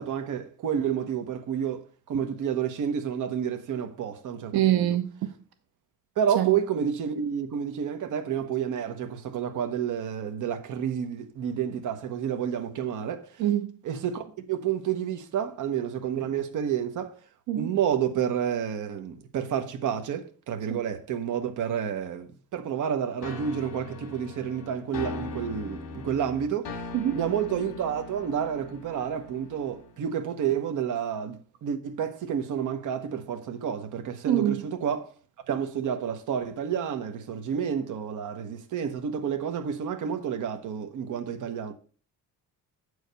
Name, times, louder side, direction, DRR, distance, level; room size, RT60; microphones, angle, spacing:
voice 1, 0.0-4.9 6.2-13.3 13.8-17.1 17.5-26.7 27.1-35.1 35.5-41.7, right 8 dB, 55° right, 1.1 m, -30 dB
voice 2, 4.5-5.3 6.4-6.6 13.4-13.7 17.5-17.8 20.7-20.8 26.9-27.3 34.3-34.6, right 12 dB, 80° right, 1.0 m, -25 dB
sound 1, 23.2-30.1, left 3 dB, 65° left, 2.2 m, -40 dB
8.0 x 4.8 x 6.7 m
cardioid pair, 175°, 36 cm